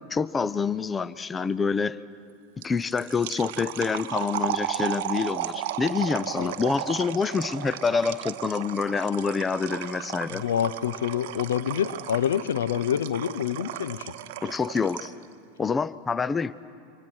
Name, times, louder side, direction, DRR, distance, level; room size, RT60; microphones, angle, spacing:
voice 1, 0.1-2.0 2.6-10.4 14.4-15.1 15.6-16.5, left 5 dB, 20° left, 18 dB, 0.6 m, -27 dB
sound 1, 2.6-15.2, right 12 dB, 55° right, 0.9 m, -34 dB
voice 2, 10.3-14.1, left 9 dB, 70° left, 16 dB, 0.6 m, -27 dB
28.0 x 25.5 x 6.2 m, 2.4 s
figure-of-eight pair, 85°, 0 cm